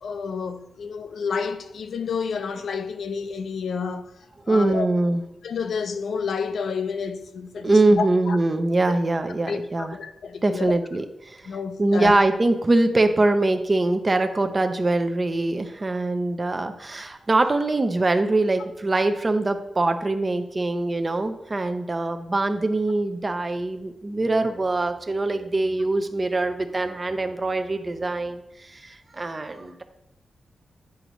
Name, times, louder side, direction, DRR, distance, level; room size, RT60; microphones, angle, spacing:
voice 1, 0.0-4.1 4.5-4.9 5.4-8.4 8.9-9.0 9.5-10.7 11.4-12.1, left 5 dB, 75° left, 0.5 m, -30 dB
voice 2, 4.5-5.2 7.6-9.9 10.4-11.5 11.8-29.8, right 2 dB, 25° right, 0.5 m, -23 dB
9.4 x 5.0 x 3.1 m
wide cardioid pair, 145°, 0 cm